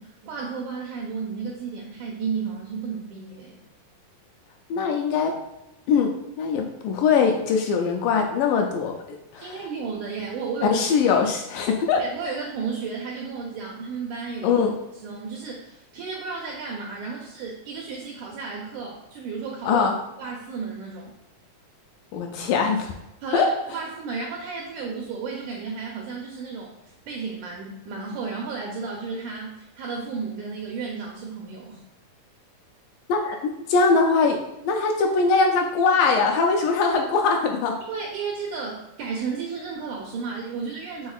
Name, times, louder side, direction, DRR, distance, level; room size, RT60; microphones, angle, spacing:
voice 1, 0.0-3.6 8.5-8.6 9.4-10.8 12.0-14.6 15.0-19.9 20.2-21.1 23.2-31.8 37.9-41.1, right 5 dB, 85° right, -1 dB, 1.7 m, -33 dB
voice 2, 4.7-5.4 5.9-6.1 6.4-9.6 10.6-12.0 14.4-14.7 19.6-19.9 22.1-22.9 23.3-23.5 33.1-37.8, left 5 dB, 80° left, 2 dB, 2.0 m, -22 dB
6.2 x 3.5 x 2.3 m, 0.92 s
omnidirectional pair, 4.1 m